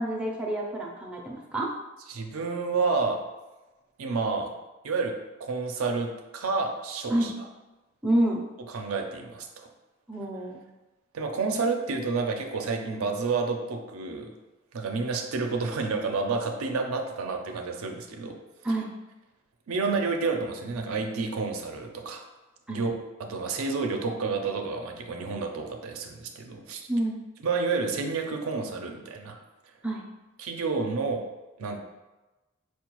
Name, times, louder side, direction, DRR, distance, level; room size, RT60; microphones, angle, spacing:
voice 1, 0.0-1.7 7.1-7.3 8.0-8.4 10.1-10.6 18.6-18.9 22.7-22.8 26.9-27.2 29.8-30.0, right 1 dB, 5° right, -2 dB, 0.3 m, -28 dB
voice 2, 2.1-3.2 4.0-4.5 4.8-5.1 5.4-7.3 8.7-9.7 11.1-14.3 14.7-18.4 19.7-22.2 22.7-22.9 23.2-26.8 27.4-29.4 30.4-31.2 31.6-31.8, right 4 dB, 85° right, 4 dB, 0.5 m, -29 dB
4.4 x 2.3 x 2.9 m, 1.1 s
head